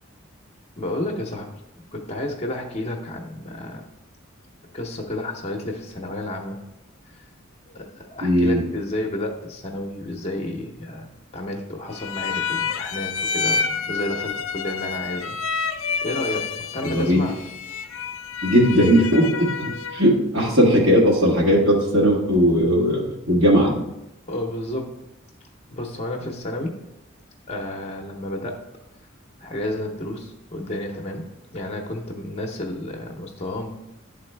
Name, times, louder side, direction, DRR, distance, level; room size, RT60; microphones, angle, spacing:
voice 1, 0.8-1.6 1.9-3.8 4.7-6.6 7.1-7.2 7.7-15.4 16.0-17.4 24.3-25.0 25.7-26.8 27.5-28.7 29.4-31.3 31.5-33.8, left 1 dB, 30° left, 1 dB, 0.7 m, -31 dB
voice 2, 8.2-8.6 16.8-17.2 18.4-23.8, equal, 70° right, -3 dB, 1.5 m, -18 dB
sound 1, 12.0-20.1, left 5 dB, 75° left, 0.4 m, -29 dB
10.5 x 3.9 x 3.3 m, 0.87 s
head